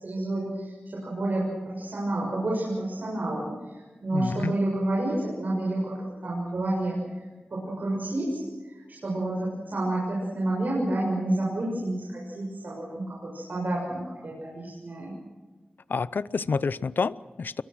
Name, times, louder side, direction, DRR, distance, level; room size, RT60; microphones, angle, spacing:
voice 1, 0.0-7.0 7.5-15.2, right 1 dB, 65° right, -4 dB, 7.0 m, -29 dB
voice 2, 4.1-4.6 15.9-17.6, left 4 dB, 80° left, 18 dB, 0.6 m, -28 dB
27.5 x 23.0 x 6.3 m, 1.3 s
wide cardioid pair, 100°, 3 cm